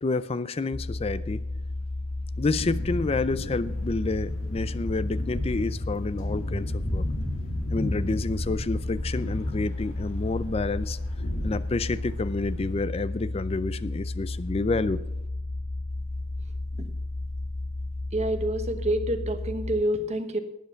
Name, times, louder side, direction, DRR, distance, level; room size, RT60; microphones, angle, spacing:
voice 1, 0.0-1.4 2.4-7.1 7.7-11.0 11.4-15.0, left 3 dB, 30° left, 0.4 m, -29 dB
sound 1, 0.7-19.8, left 2 dB, 55° left, 1.1 m, -33 dB
sound 2, 2.6-12.8, left 1 dB, 80° left, 2.3 m, -34 dB
voice 2, 18.1-20.4, right 1 dB, 35° right, 1.1 m, -27 dB
11.5 x 9.3 x 5.7 m
head